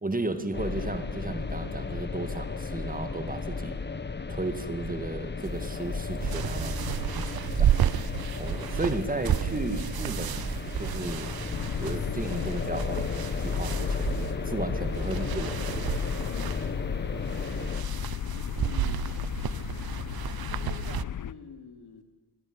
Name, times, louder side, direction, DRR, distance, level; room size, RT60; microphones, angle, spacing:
voice 1, 0.0-3.7 4.3-7.8 8.4-10.4 10.7-11.3 11.8-14.1 14.4-15.8, right 2 dB, 20° right, 10 dB, 2.1 m, -34 dB
sound 1, 0.5-17.8, left 4 dB, 25° left, 1.6 m, -34 dB
sound 2, 5.4-21.0, right 10 dB, 65° right, 0.9 m, -32 dB
sound 3, 11.5-21.3, left 9 dB, 55° left, 0.8 m, -35 dB
voice 2, 16.2-17.2 18.3-19.1 20.5-22.0, left 5 dB, 75° left, 6 dB, 3.3 m, -46 dB
25.5 x 18.0 x 9.9 m, 1.1 s
wide cardioid pair, 105°, 39 cm